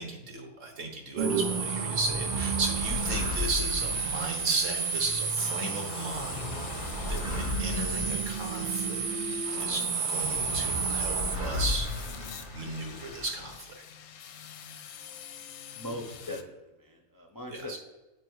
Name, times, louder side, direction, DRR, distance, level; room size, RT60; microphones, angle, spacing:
voice 1, 0.0-6.5 7.0-9.0 9.6-9.8 10.1-11.9 12.5-13.5 17.5-17.8, right 3 dB, 60° right, 1 dB, 1.5 m, -34 dB
sound 1, 1.2-13.6, left 2 dB, 35° right, 1.3 m, -36 dB
sound 2, 1.2-11.4, right 6 dB, 85° right, 0.4 m, -32 dB
sound 3, 1.5-16.4, left 9 dB, 85° left, 1.0 m, -45 dB
voice 2, 15.7-16.4 16.8-17.8, left 1 dB, 35° left, 0 dB, 0.3 m, -39 dB
8.3 x 3.4 x 4.6 m, 1.1 s
omnidirectional pair, 1.5 m